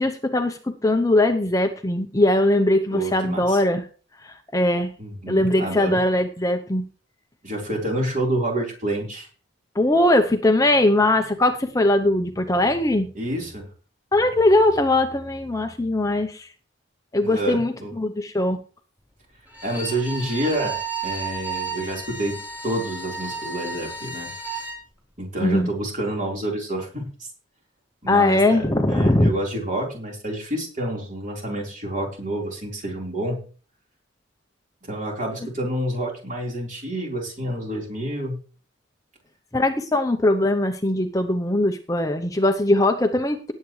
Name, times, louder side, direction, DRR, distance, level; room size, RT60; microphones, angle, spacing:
voice 1, 0.0-3.9 4.2-4.9 5.3-6.8 9.7-13.1 14.1-16.5 17.1-18.6 25.4-25.7 28.1-29.3 39.5-43.5, left 1 dB, 15° left, 6 dB, 0.7 m, -20 dB
voice 2, 2.9-3.6 5.0-6.0 7.4-9.3 13.1-13.6 17.2-17.9 19.6-20.8 21.0-22.4 22.6-24.3 25.2-27.3 28.0-28.6 28.9-33.4 34.9-38.4, right 1 dB, 40° right, -1 dB, 4.1 m, -28 dB
Bowed string instrument, 19.5-24.8, right 4 dB, 10° right, 3.7 m, -33 dB
18.5 x 8.3 x 3.2 m, 0.39 s
head